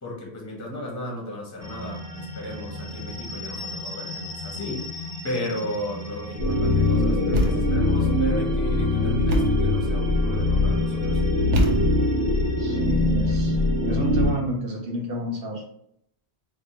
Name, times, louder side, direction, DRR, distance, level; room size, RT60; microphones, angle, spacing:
voice 1, 0.0-11.2, left 1 dB, 20° left, -3 dB, 0.6 m, -34 dB
sound 1, 1.6-14.4, equal, 20° right, 0.6 m, -37 dB
sound 2, 6.4-14.3, left 2 dB, 80° left, 1.0 m, -22 dB
Thump thud, 7.3-7.9 9.3-9.7 11.5-12.2, equal, 90° right, 0.9 m, -25 dB
voice 2, 12.6-15.6, right 1 dB, 60° right, 0 dB, 0.9 m, -31 dB
2.6 x 2.1 x 4.0 m, 0.73 s
omnidirectional pair, 1.1 m